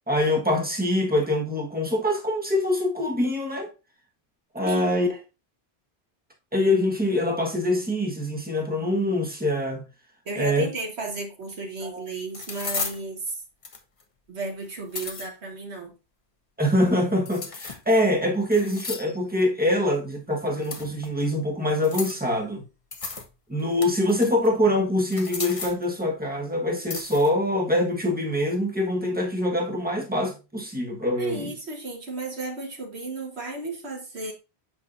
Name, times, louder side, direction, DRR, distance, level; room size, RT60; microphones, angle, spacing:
voice 1, 0.1-3.7 4.5-5.1 6.5-9.8 10.4-10.7 11.8-12.0 16.6-22.6 23.5-31.5, left 1 dB, 10° right, 1.3 m, -24 dB
voice 2, 4.6-5.0 10.2-13.4 14.3-15.9 31.2-34.3, right 3 dB, 80° right, 1.7 m, -34 dB
sound 1, 11.4-11.5 12.3-13.0 13.6-14.0 14.7-15.3 17.3-18.0 18.5-19.2 20.6-21.1 21.8-22.3 22.9-23.3 23.6-24.5 25.0-25.8 26.9-27.3, left 4 dB, 35° left, 0.8 m, -34 dB
8.0 x 5.6 x 2.5 m
omnidirectional pair, 1.1 m